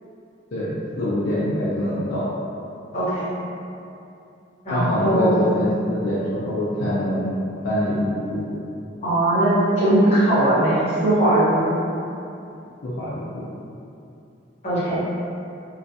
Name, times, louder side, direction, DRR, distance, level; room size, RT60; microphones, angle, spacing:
voice 1, 0.5-2.2 4.7-7.3 7.6-8.6 12.8-13.4, left 1 dB, 60° left, -10 dB, 0.4 m, -24 dB
voice 2, 2.9-3.2 4.6-5.5 9.0-11.8 14.6-15.0, right 1 dB, 35° left, -12 dB, 0.9 m, -19 dB
2.3 x 2.2 x 2.6 m, 2.7 s
head